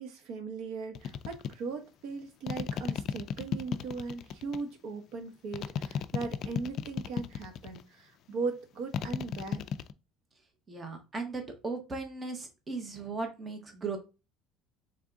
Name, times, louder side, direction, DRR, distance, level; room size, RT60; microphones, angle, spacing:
voice 1, 0.0-9.7, right 4 dB, 60° right, 0.8 m, -38 dB
sound 1, 0.9-1.5 2.5-4.6 5.5-7.8 8.9-9.9, left 8 dB, 40° left, 0.3 m, -34 dB
voice 2, 10.7-14.0, right 4 dB, 15° right, 0.8 m, -37 dB
3.5 x 3.4 x 3.8 m
cardioid pair, 165°, 0 cm